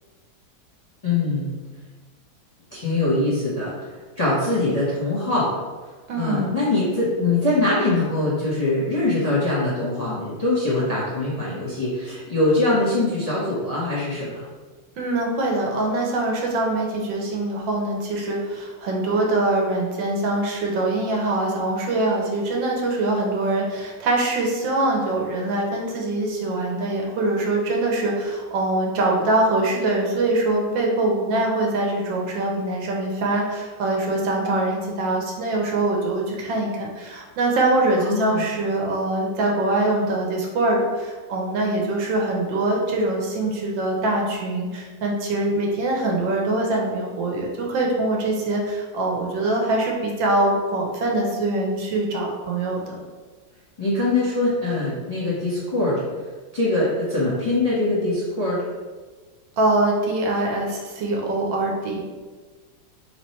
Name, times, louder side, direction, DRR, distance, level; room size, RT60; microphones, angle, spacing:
voice 1, 1.0-1.5 2.7-3.7 4.2-5.5 6.2-14.5 38.0-38.4 53.8-56.0 56.5-58.6, left 2 dB, 25° left, -9 dB, 0.9 m, -23 dB
voice 2, 6.1-6.6 15.0-53.0 59.6-62.0, right 2 dB, 75° right, -1 dB, 1.5 m, -23 dB
3.9 x 3.0 x 4.2 m, 1.4 s
omnidirectional pair, 2.1 m